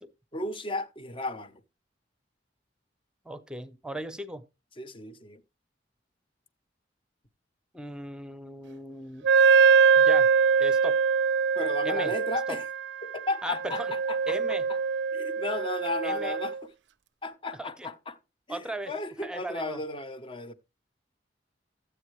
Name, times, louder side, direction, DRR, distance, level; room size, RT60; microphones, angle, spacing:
voice 1, 0.3-1.6 4.8-5.4 11.5-12.7 13.0-14.4 15.1-16.6 17.2-18.2 18.5-20.5, left 2 dB, 30° left, 0.9 m, -34 dB
voice 2, 3.2-4.4 7.7-9.3 10.0-10.3 10.6-11.0 11.8-12.1 12.5-12.6 13.4-13.9 14.3-14.7 16.0-16.4 17.5-17.9 18.5-18.9 19.2-19.8, right 1 dB, 5° right, 0.8 m, -37 dB
Wind instrument woodwind instrument, 9.2-16.6, right 6 dB, 90° right, 0.4 m, -23 dB
14.0 x 8.1 x 3.2 m
head